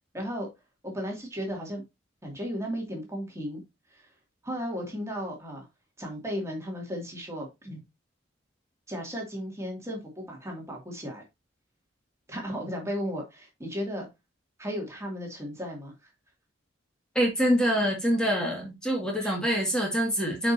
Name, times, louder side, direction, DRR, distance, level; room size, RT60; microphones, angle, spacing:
voice 1, 0.1-0.5 0.9-1.8 2.2-3.6 3.9-4.1 4.4-5.7 6.0-7.8 8.9-11.2 12.3-14.1 14.6-16.1 19.2-19.3, equal, 15° right, 2.5 m, -35 dB
voice 2, 17.2-20.5, equal, 5° left, 2.0 m, -25 dB
8.8 x 5.2 x 2.8 m
head